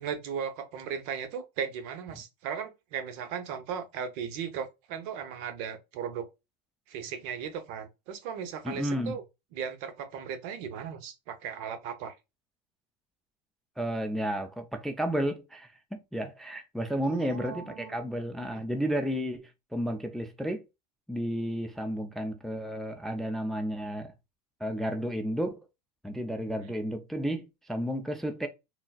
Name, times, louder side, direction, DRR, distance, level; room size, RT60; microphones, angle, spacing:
voice 1, 0.0-6.3 6.9-9.2 9.5-12.2 17.0-18.0 18.4-18.6 26.6-26.7, right 7 dB, 65° right, 0.7 m, -37 dB
voice 2, 8.6-9.1 13.8-20.6 21.1-24.1 24.6-25.7 26.0-28.5, equal, ahead, 0.3 m, -32 dB
3.9 x 2.0 x 2.2 m
supercardioid pair, 115°, 21 cm